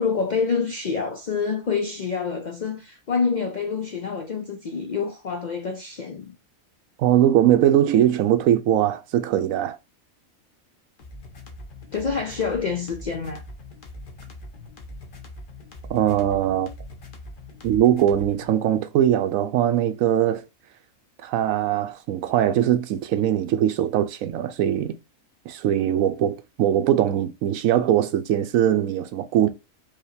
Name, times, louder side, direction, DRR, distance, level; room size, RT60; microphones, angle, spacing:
voice 1, 0.0-6.3 11.9-13.4, left 5 dB, 65° left, 0.4 m, -27 dB
voice 2, 7.0-9.8 15.9-16.7 17.6-20.4 21.2-25.0 25.5-29.5, right 11 dB, 85° right, 1.0 m, -21 dB
sound 1, 11.0-18.6, left 2 dB, 45° left, 1.0 m, -42 dB
4.9 x 2.9 x 2.7 m
omnidirectional pair, 1.4 m